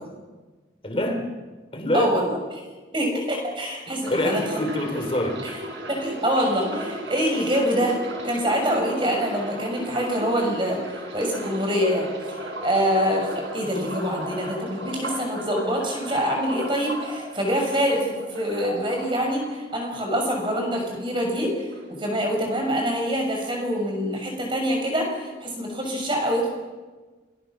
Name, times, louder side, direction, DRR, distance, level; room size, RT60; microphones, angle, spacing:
voice 1, 0.8-1.2 1.7-2.1 3.9-5.4, left 1 dB, 30° left, 4 dB, 3.3 m, -25 dB
voice 2, 1.9-2.4 2.9-4.4 5.4-5.5 5.9-8.0 8.2-10.8 11.1-26.5, equal, 25° right, 2 dB, 5.9 m, -25 dB
sound 1, 4.0-20.0 20.3-21.2 21.4-21.8, right 1 dB, 90° right, 5.3 m, -36 dB
28.0 x 20.5 x 6.0 m, 1.3 s
head